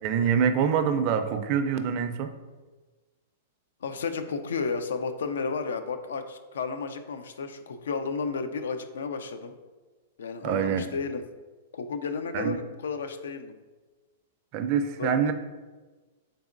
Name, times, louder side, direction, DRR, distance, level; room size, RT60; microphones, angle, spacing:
voice 1, 0.0-2.3 10.4-10.9 12.3-12.6 14.5-15.3, right 7 dB, 45° right, 8 dB, 0.4 m, -25 dB
voice 2, 3.8-9.5 10.2-11.2 11.7-13.6 15.0-15.2, left 5 dB, 85° left, 9 dB, 0.4 m, -32 dB
3.9 x 3.5 x 2.5 m, 1.3 s
hypercardioid pair, 135°, 0 cm